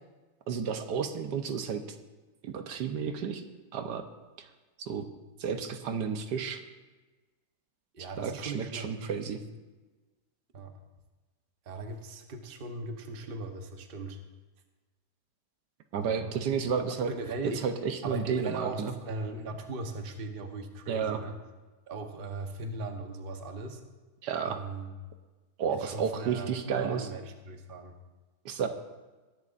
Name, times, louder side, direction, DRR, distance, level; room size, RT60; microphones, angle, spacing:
voice 1, 0.5-1.8 2.4-3.4 3.7-4.0 4.4-4.5 4.8-5.1 5.4-6.6 8.2-9.4 15.9-17.1 17.6-18.9 20.9-21.2 24.2-24.6 25.6-27.1 28.4-28.7, right 6 dB, 80° right, 7 dB, 1.4 m, -31 dB
voice 2, 7.9-8.9 10.5-10.7 11.7-14.2 15.9-16.3 17.1-17.6 18.0-21.4 21.9-23.8 24.4-24.9 25.7-27.9, right 2 dB, 40° right, 5 dB, 1.1 m, -38 dB
20.5 x 11.0 x 2.5 m, 1.2 s
omnidirectional pair, 1.8 m